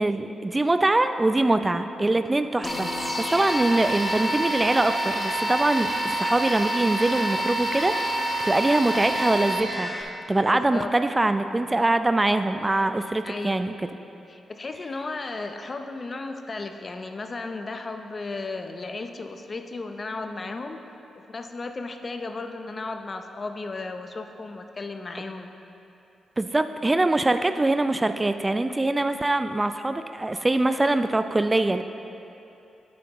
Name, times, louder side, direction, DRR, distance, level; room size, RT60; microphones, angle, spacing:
voice 1, 0.0-2.9 3.2-13.8 26.4-31.8, right 2 dB, 25° right, 10 dB, 0.4 m, -23 dB
sound 1, 2.6-10.0, right 1 dB, 25° left, 1.2 m, -27 dB
voice 2, 10.5-10.9 13.2-13.7 14.3-20.8 21.1-25.5, left 3 dB, 45° left, 6 dB, 0.6 m, -35 dB
9.4 x 8.3 x 3.0 m, 2.8 s
hypercardioid pair, 40°, 0 cm